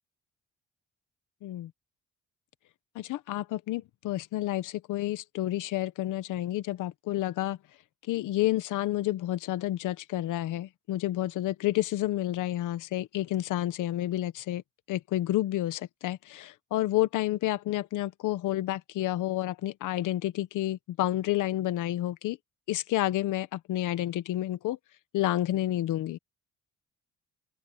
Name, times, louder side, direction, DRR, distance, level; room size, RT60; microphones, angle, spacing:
voice 1, 2.9-7.6 8.1-14.6 14.9-22.4 22.7-24.8 25.1-26.2, left 14 dB, 85° left, 1.1 m, -30 dB
open air
cardioid pair, 90°, 30 cm